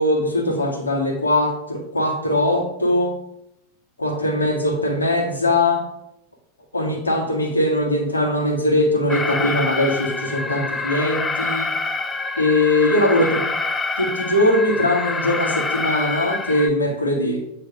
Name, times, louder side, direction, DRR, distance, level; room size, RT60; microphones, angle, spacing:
voice 1, 0.0-3.1 4.0-5.8 6.7-11.7 12.4-13.4 14.0-17.4, left 1 dB, 80° left, 0 dB, 1.5 m, -20 dB
Alarm, 9.1-16.7, left 3 dB, 10° left, 0.4 m, -26 dB
8.2 x 2.8 x 4.9 m, 0.82 s
figure-of-eight pair, 90°, 0 cm